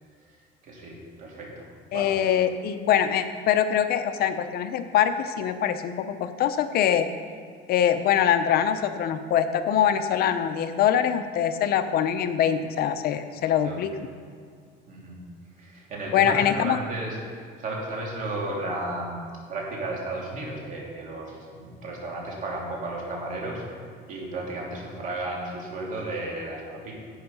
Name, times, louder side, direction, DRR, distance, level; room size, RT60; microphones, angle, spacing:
voice 1, 0.6-2.1 13.5-13.8 14.9-15.2 15.6-17.2 17.6-23.6 24.0-26.9, right 2 dB, 45° right, -3 dB, 3.0 m, -34 dB
voice 2, 1.9-7.1 7.7-13.9 16.1-16.8, left 9 dB, 55° left, 9 dB, 0.6 m, -23 dB
10.5 x 8.6 x 5.5 m, 2.1 s
cardioid pair, 135°, 19 cm